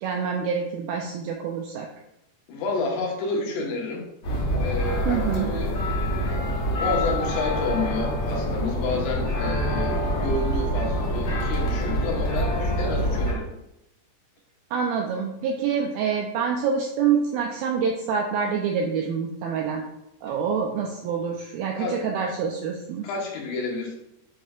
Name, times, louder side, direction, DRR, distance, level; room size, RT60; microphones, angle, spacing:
voice 1, 0.0-1.9 5.1-5.6 14.7-19.9 20.2-23.1, right 6 dB, 85° right, 1 dB, 2.1 m, -26 dB
voice 2, 2.5-4.1 4.5-6.4 6.8-13.5 21.8-22.0 23.0-23.9, left 3 dB, 90° left, -2 dB, 3.7 m, -30 dB
sound 1, 4.2-13.3, equal, 65° left, 1.4 m, -26 dB
9.4 x 5.5 x 2.4 m, 0.85 s
omnidirectional pair, 4.9 m